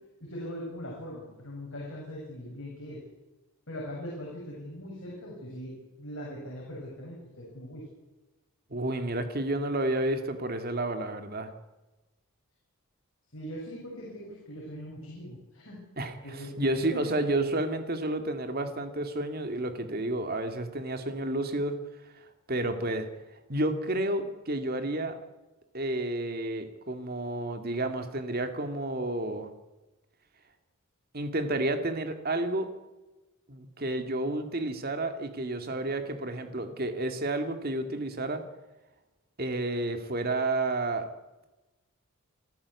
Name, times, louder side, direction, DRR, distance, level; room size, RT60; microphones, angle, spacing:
voice 1, 0.2-3.0 3.7-5.7 6.0-7.8 13.3-15.8 16.2-17.0, equal, 60° left, -4 dB, 7.3 m, -41 dB
voice 2, 8.7-11.5 16.0-21.8 22.5-23.1 23.5-25.2 25.7-29.5 31.1-32.7 33.5-38.4 39.4-41.1, right 2 dB, 45° right, 7 dB, 2.1 m, -30 dB
27.0 x 14.5 x 8.3 m, 1.1 s
head